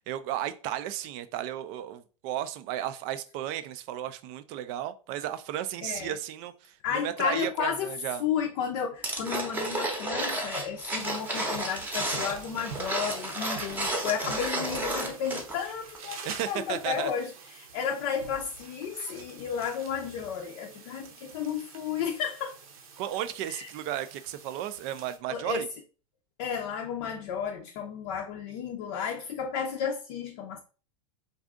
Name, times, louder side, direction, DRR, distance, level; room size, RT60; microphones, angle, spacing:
voice 1, 0.1-8.2 16.0-17.1 23.0-25.7, right 12 dB, 40° right, 0.4 m, -34 dB
voice 2, 5.8-6.2 6.8-22.5 23.4-23.7 25.3-25.6 26.4-30.6, left 7 dB, 50° left, 0.5 m, -33 dB
sound 1, 9.0-15.7 15.9-16.0, right 1 dB, 10° right, 0.8 m, -32 dB
sound 2, 11.0-25.2, right 6 dB, 75° right, 0.8 m, -46 dB
2.6 x 2.4 x 3.5 m
hypercardioid pair, 105°, 18 cm